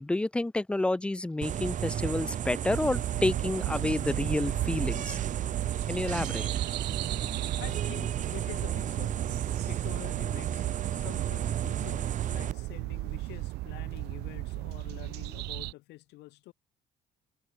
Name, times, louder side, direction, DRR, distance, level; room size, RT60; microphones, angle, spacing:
voice 1, 0.0-5.2 5.9-6.5, left 2 dB, 5° left, 0.3 m, -29 dB
sound 1, 1.4-12.5, right 10 dB, 50° right, 1.2 m, -33 dB
sound 2, 2.8-15.7, right 19 dB, 80° right, 0.5 m, -36 dB
voice 2, 7.6-9.4 9.7-16.5, left 19 dB, 85° left, 5.9 m, -47 dB
cardioid pair, 110°, 17 cm